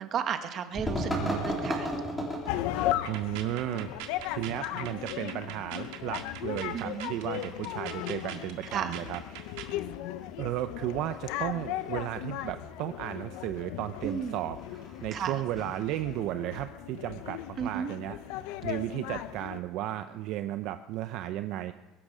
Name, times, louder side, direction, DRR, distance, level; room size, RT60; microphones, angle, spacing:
voice 1, 0.0-1.2 1.4-1.9 6.7-7.1 8.7-9.0 14.0-14.4 15.1-15.4 17.6-17.9, right 7 dB, 35° right, 8 dB, 1.2 m, -33 dB
sound 1, 0.7-16.1, equal, 5° left, 3.6 m, -39 dB
voice 2, 1.1-1.4 3.1-3.9 4.3-9.6 10.4-21.7, right 13 dB, 55° right, 10 dB, 0.6 m, -34 dB
sound 2, 2.5-19.6, left 13 dB, 70° left, 0.7 m, -37 dB
sound 3, 2.9-9.8, right 10 dB, 85° right, 1.7 m, -43 dB
22.0 x 12.0 x 5.0 m, 1.1 s
cardioid pair, 160°, 0 cm